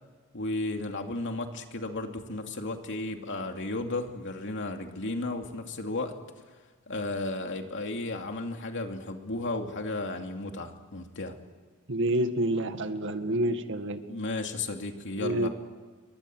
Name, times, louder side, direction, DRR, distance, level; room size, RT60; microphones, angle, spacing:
voice 1, 0.3-6.1 6.9-11.3 14.1-15.5, left 2 dB, 60° left, 4 dB, 2.8 m, -34 dB
voice 2, 11.9-14.0 15.2-15.5, right 1 dB, 60° right, 8 dB, 2.0 m, -28 dB
29.5 x 24.0 x 7.9 m, 1.4 s
head